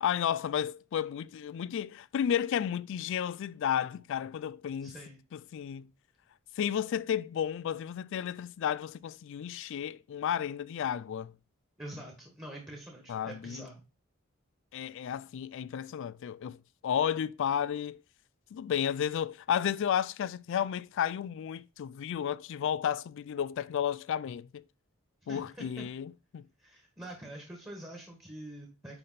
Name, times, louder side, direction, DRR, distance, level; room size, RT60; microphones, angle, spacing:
voice 1, 0.0-4.9 5.3-5.9 6.6-11.3 13.1-13.6 14.7-16.6 16.8-18.0 18.5-24.6 25.3-26.4, left 9 dB, 60° left, 0.3 m, -32 dB
voice 2, 4.8-5.2 11.8-13.8 25.3-25.9 26.6-29.0, right 1 dB, 10° right, 1.5 m, -45 dB
9.7 x 3.4 x 4.0 m
head